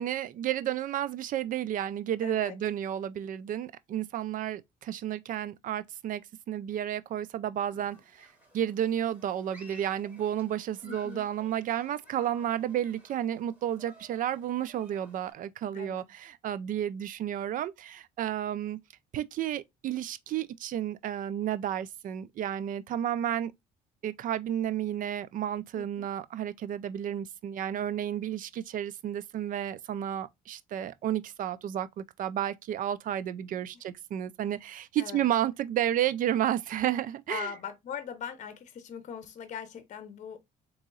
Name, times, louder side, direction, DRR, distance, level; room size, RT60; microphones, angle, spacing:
voice 1, 0.0-6.2 6.5-8.3 8.5-18.8 19.1-23.5 24.0-37.5, right 11 dB, 55° right, 0.5 m, -32 dB
voice 2, 2.2-2.6 10.8-11.2 15.7-16.1 25.8-26.1 35.0-35.3 37.3-40.4, left 8 dB, 45° left, 0.8 m, -40 dB
Human group actions, 7.7-15.3, equal, 10° right, 2.6 m, -56 dB
3.7 x 3.0 x 3.8 m
cardioid pair, 110°, 17 cm